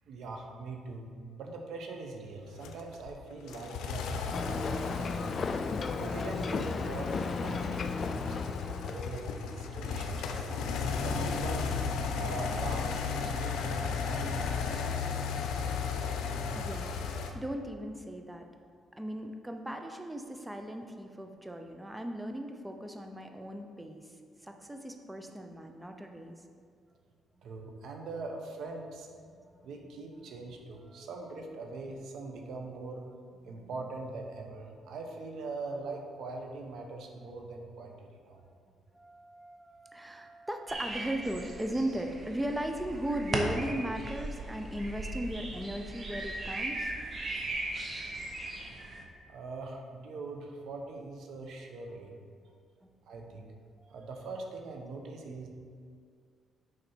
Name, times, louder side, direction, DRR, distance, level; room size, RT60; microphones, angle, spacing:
voice 1, 0.1-5.5 6.0-8.4 8.9-11.7 12.1-14.9 27.4-29.1 29.6-33.0 33.4-38.4 49.3-52.1 53.1-53.5 53.9-55.5, right 3 dB, 75° right, 2 dB, 0.9 m, -42 dB
sound 1, 2.6-17.3, left 5 dB, 85° left, 0.6 m, -35 dB
Ocean, 4.3-9.2, left 4 dB, 45° left, 0.4 m, -34 dB
voice 2, 16.6-18.5 19.0-26.5 29.4-29.6 30.9-31.1 33.5-33.6 38.3-38.5 38.9-47.1 52.8-52.9 53.8-54.0, right 1 dB, 10° right, 5 dB, 0.5 m, -37 dB
sound 2, 40.7-49.0, right 2 dB, 35° right, 1.0 m, -38 dB
6.6 x 5.2 x 4.4 m, 2.2 s
cardioid pair, 90°, 0 cm